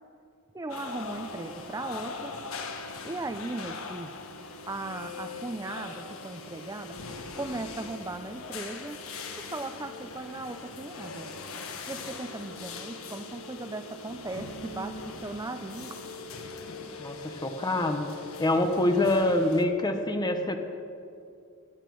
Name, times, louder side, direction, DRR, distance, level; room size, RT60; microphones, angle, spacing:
voice 1, 0.5-2.3 3.0-4.1 4.7-7.0 7.4-9.0 9.4-11.3 11.9-16.1, right 2 dB, 15° right, 7 dB, 0.6 m, -37 dB
sound 1, 0.7-19.6, left 3 dB, 75° left, 1.3 m, -41 dB
voice 2, 17.0-18.1 18.4-20.6, left 1 dB, 20° left, 6 dB, 0.9 m, -25 dB
20.5 x 8.8 x 6.3 m, 2.5 s
head